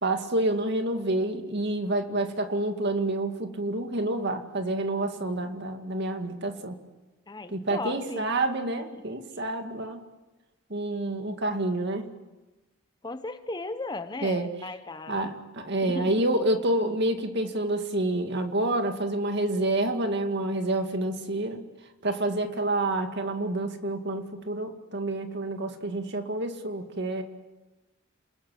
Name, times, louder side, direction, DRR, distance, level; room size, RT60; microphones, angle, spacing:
voice 1, 0.0-6.8 7.5-10.0 10.7-12.1 14.2-14.5 15.1-21.6 22.0-27.2, right 2 dB, 50° right, 6 dB, 2.2 m, -28 dB
voice 2, 7.3-8.3 8.9-9.0 13.0-15.3 15.8-16.3, left 2 dB, 20° left, 10 dB, 0.9 m, -36 dB
28.5 x 21.0 x 7.8 m, 1.1 s
head